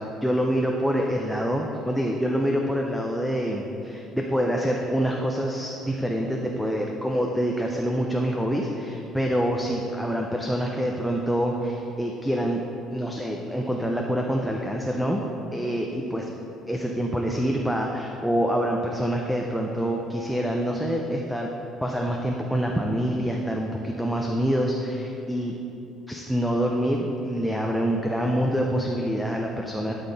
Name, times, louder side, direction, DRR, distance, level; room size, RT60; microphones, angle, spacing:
voice 1, 0.0-12.6 12.9-15.2 15.5-16.3 16.7-21.5 21.8-25.5 26.1-29.9, equal, ahead, 0 dB, 0.5 m, -26 dB
12.0 x 5.8 x 3.9 m, 2.9 s
cardioid pair, 160°, 0 cm